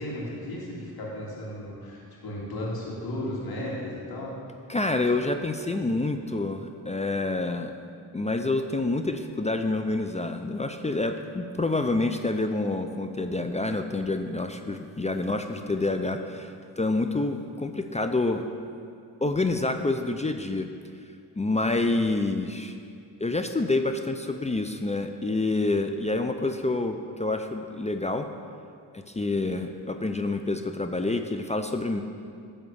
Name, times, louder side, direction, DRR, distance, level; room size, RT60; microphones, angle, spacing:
voice 1, 0.0-4.3, left 1 dB, 70° left, -4 dB, 2.2 m, -35 dB
voice 2, 4.7-7.7 8.1-18.5 19.2-20.7 21.3-22.8 23.2-28.3 28.9-32.0, left 2 dB, 20° left, 6 dB, 0.5 m, -27 dB
10.5 x 3.6 x 7.0 m, 2.4 s
cardioid pair, 55°, 39 cm